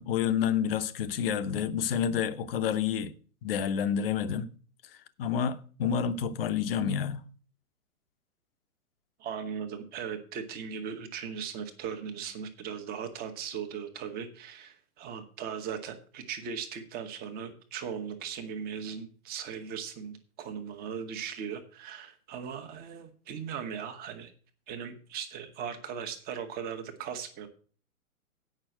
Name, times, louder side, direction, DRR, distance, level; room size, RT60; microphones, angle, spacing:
voice 1, 0.0-3.1 3.4-4.5 5.2-7.2, left 8 dB, 40° left, 0.9 m, -29 dB
voice 2, 9.2-24.3 24.7-27.5, right 7 dB, 20° right, 1.3 m, -38 dB
8.9 x 5.7 x 7.5 m
figure-of-eight pair, 120°, 44 cm